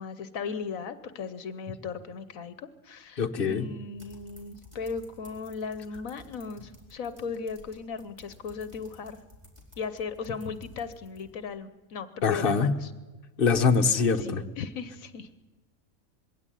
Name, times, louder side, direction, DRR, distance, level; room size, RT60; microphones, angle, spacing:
voice 1, 0.0-9.2 9.8-12.9 14.2-15.3, left 5 dB, 70° left, 12 dB, 1.3 m, -37 dB
voice 2, 3.2-3.7 12.2-12.7 13.4-14.4, left 5 dB, 40° left, 5 dB, 1.3 m, -23 dB
sound 1, 3.9-11.5, left 2 dB, 20° right, 4.2 m, -54 dB
21.5 x 16.5 x 10.0 m, 1.3 s
omnidirectional pair, 1.5 m